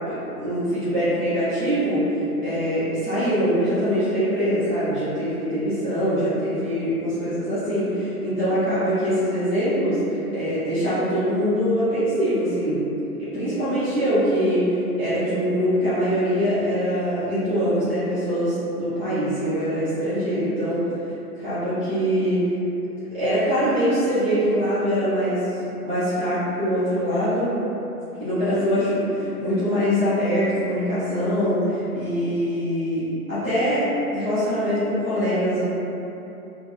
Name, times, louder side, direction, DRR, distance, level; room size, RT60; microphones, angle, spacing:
voice 1, 0.1-12.8 13.2-20.8 21.4-22.4 23.1-27.5 28.2-33.8 34.1-35.6, equal, 10° right, -18 dB, 0.4 m, -23 dB
2.4 x 2.2 x 2.9 m, 2.9 s
figure-of-eight pair, 125°, 46 cm